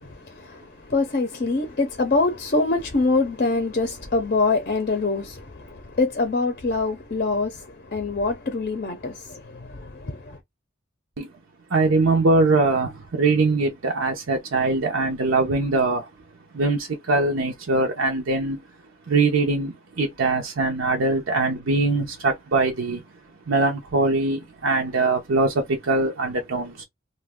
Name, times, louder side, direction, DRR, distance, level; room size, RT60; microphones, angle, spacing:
voice 1, 0.0-10.4, left 3 dB, 45° left, 0.6 m, -25 dB
voice 2, 11.7-16.1 16.5-18.6 19.1-23.0 23.5-26.8, right 3 dB, 70° right, 0.6 m, -22 dB
2.5 x 2.2 x 3.5 m
head